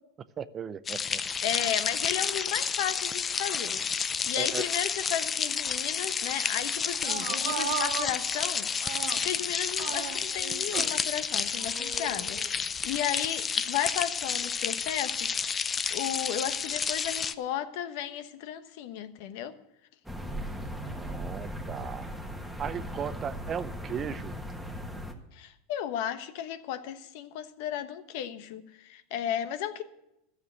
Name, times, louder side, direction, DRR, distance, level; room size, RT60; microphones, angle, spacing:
voice 1, 0.4-1.2 4.4-4.6 20.9-22.1 22.6-24.3, right 8 dB, 30° right, 15 dB, 0.6 m, -36 dB
sound 1, 0.9-17.3, left 6 dB, 25° left, 0.6 m, -30 dB
voice 2, 1.4-8.7 9.2-15.3 15.9-19.5 25.3-29.8, left 10 dB, 65° left, 11 dB, 1.1 m, -34 dB
sound 2, 6.8-9.4 9.8-11.0 11.6-12.6, right 9 dB, 80° right, 1.4 m, -37 dB
sound 3, 20.0-25.1, equal, ahead, 1.5 m, -38 dB
12.5 x 7.1 x 9.4 m, 0.85 s
supercardioid pair, 120°, 0 cm